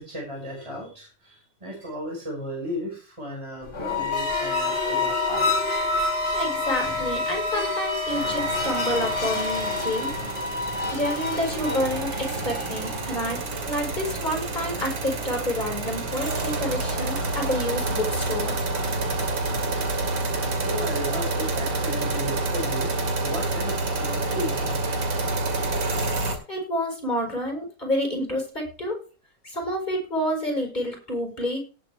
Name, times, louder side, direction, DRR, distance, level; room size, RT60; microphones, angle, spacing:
voice 1, 0.0-5.5 20.6-22.9 23.2-24.8, equal, 15° right, -3 dB, 5.4 m, -34 dB
sound 1, 3.6-13.0, left 2 dB, 50° left, 3.3 m, -28 dB
sound 2, 4.1-10.1, left 4 dB, 85° right, 3.3 m, -32 dB
voice 2, 6.3-10.1 10.9-18.6 26.5-29.0 29.4-31.6, left 1 dB, 20° left, 2 dB, 5.3 m, -29 dB
sound 3, 8.1-26.4, right 2 dB, 65° right, 3.1 m, -28 dB
18.0 x 7.6 x 3.4 m, 0.35 s
omnidirectional pair, 2.3 m